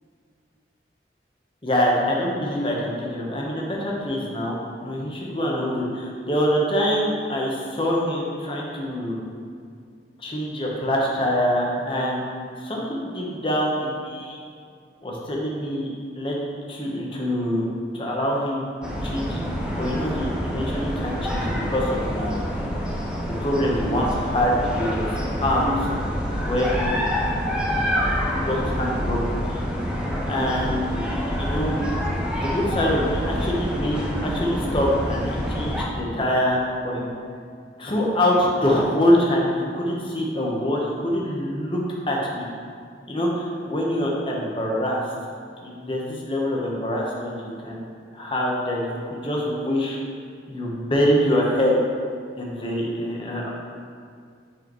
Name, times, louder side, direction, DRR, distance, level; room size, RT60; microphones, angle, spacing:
voice 1, 1.6-9.2 10.2-12.2 12.6-14.4 15.0-15.9 16.1-16.4 16.7-17.6 17.9-18.7 19.0-19.4 19.8-22.5 23.2-25.1 25.4-25.9 26.5-27.4 27.8-27.9 28.4-29.6 30.3-30.9 31.4-31.8 32.3-36.6 36.8-37.1 37.8-41.8 42.1-42.5 43.1-45.0 45.6-47.8 48.1-50.0 50.5-51.8 52.4-53.5, equal, 30° left, -3 dB, 1.0 m, -25 dB
sound 1, 18.8-35.8, equal, 5° right, 0.7 m, -27 dB
9.1 x 4.8 x 3.0 m, 2.2 s
head